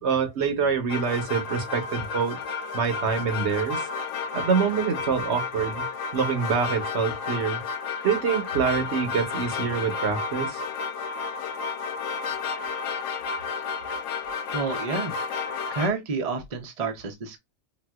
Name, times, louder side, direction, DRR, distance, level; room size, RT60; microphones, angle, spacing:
voice 1, 0.0-2.4 2.7-3.8 4.3-5.8 6.1-7.6 8.0-10.6, right 6 dB, 70° right, 1.1 m, -26 dB
sound 1, 0.9-15.9, left 5 dB, 85° left, 0.9 m, -32 dB
voice 2, 14.5-15.1 15.7-17.4, right 4 dB, 40° right, 0.6 m, -29 dB
4.0 x 2.2 x 2.3 m
omnidirectional pair, 1.2 m